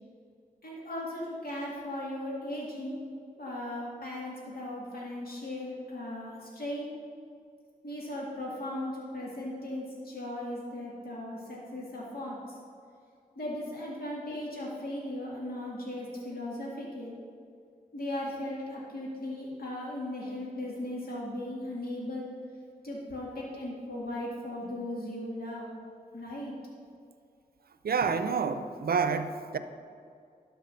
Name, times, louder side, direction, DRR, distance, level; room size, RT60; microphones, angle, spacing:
voice 1, 0.6-3.0 3.4-6.9 7.8-12.6 13.4-17.2 17.9-22.3 22.8-25.7 26.1-26.6, left 1 dB, 65° left, -5 dB, 2.1 m, -37 dB
voice 2, 27.8-29.6, right 5 dB, 70° right, 10 dB, 0.6 m, -28 dB
11.5 x 4.8 x 6.4 m, 2.3 s
cardioid pair, 45°, 16 cm